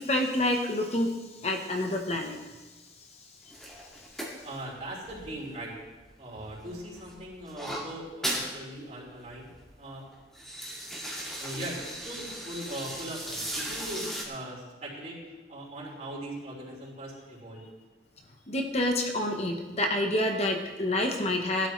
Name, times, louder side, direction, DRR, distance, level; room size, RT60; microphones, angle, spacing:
voice 1, 0.0-2.4 18.5-21.7, left 1 dB, 35° left, 3 dB, 1.0 m, -28 dB
sound 1, 3.5-6.0 6.4-8.5 8.9-9.0 9.3-9.7 10.1-14.2, right 1 dB, 5° left, 2.1 m, -37 dB
voice 2, 4.4-5.8 6.2-9.5 9.8-10.1 11.4-15.2 15.5-17.7, right 1 dB, 40° right, -5 dB, 4.4 m, -40 dB
18.5 x 12.0 x 3.2 m, 1.2 s
head